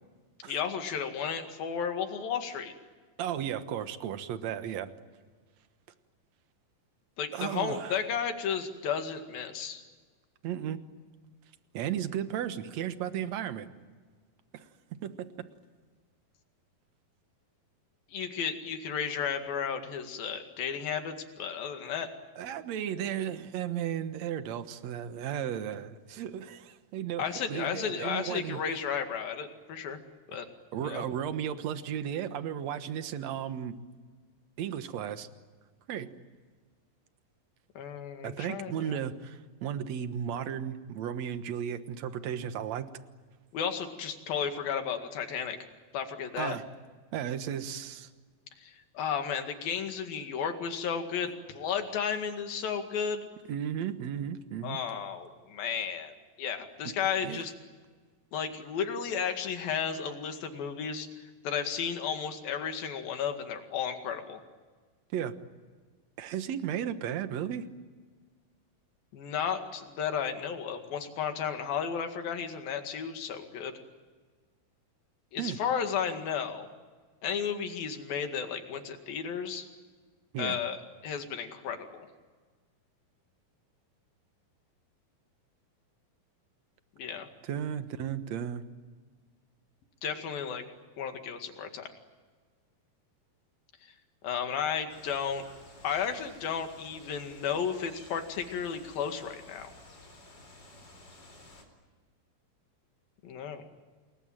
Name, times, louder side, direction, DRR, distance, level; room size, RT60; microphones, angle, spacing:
voice 1, 0.5-2.7 7.2-9.8 18.1-22.1 27.2-30.0 30.3-30.5 30.8-31.0 37.8-39.0 43.5-45.6 45.9-46.6 48.6-53.3 54.6-57.5 58.3-64.4 69.1-73.8 75.3-76.7 77.2-79.7 80.4-82.1 87.0-87.3 90.0-90.6 91.0-91.9 93.8-93.9 94.2-95.4 95.8-99.7 103.2-103.7, left 7 dB, 70° left, 6 dB, 3.8 m, -33 dB
voice 2, 3.2-4.9 7.3-8.0 10.4-10.8 11.7-13.7 14.5-14.7 15.0-15.3 22.4-28.6 30.7-33.8 34.6-35.3 35.9-36.1 38.2-42.9 46.4-46.6 47.1-48.1 53.5-54.8 56.8-56.9 57.2-57.4 65.1-65.3 66.2-67.7 75.4-75.6 80.3-80.6 87.5-88.6, right 9 dB, 60° right, 10 dB, 2.1 m, -34 dB
sound 1, 94.9-101.6, left 2 dB, 30° left, 4.5 m, -53 dB
29.0 x 21.5 x 9.1 m, 1.5 s
omnidirectional pair, 4.3 m